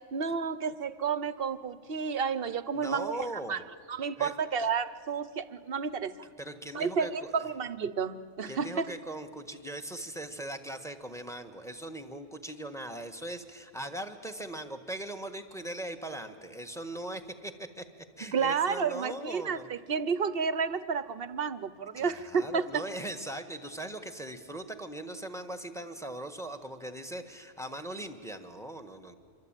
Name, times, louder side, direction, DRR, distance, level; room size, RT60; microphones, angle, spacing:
voice 1, 0.1-3.6 3.9-6.1 6.7-8.9 18.3-22.8, right 6 dB, 50° right, 15 dB, 0.9 m, -31 dB
voice 2, 2.7-3.6 4.2-4.3 6.4-7.3 8.5-17.8 18.2-19.7 22.0-29.1, right 1 dB, ahead, 9 dB, 1.4 m, -40 dB
26.0 x 24.0 x 9.0 m, 2.2 s
omnidirectional pair, 1.4 m